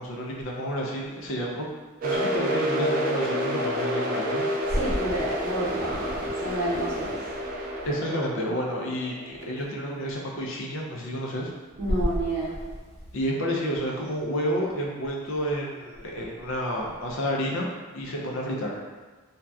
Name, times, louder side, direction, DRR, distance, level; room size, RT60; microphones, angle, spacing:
voice 1, 0.0-1.7 2.0-4.5 7.8-11.5 13.1-18.8, equal, 65° left, -2 dB, 0.4 m, -30 dB
sound 1, 2.0-9.6, equal, 40° right, 0.3 m, -29 dB
voice 2, 4.7-7.2 11.8-12.6, equal, 90° right, -12 dB, 0.8 m, -28 dB
2.6 x 2.2 x 2.3 m, 1.3 s
head